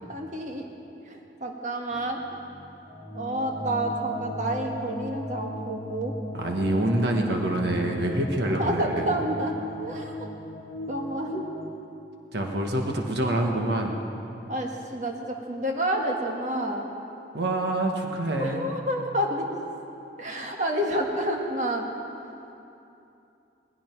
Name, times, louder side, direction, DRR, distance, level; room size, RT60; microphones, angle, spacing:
voice 1, 0.1-0.7 1.0-2.2 3.1-6.1 8.6-10.3 10.9-11.5 14.5-16.9 18.4-19.5 20.2-21.9, right 1 dB, 45° right, 1 dB, 1.7 m, -29 dB
sound 1, 1.9-11.7, left 1 dB, 40° left, 1.7 m, -37 dB
voice 2, 6.3-9.1 12.3-14.0 17.3-18.7, right 1 dB, 75° right, 2 dB, 1.4 m, -26 dB
19.0 x 16.0 x 4.6 m, 2.8 s
head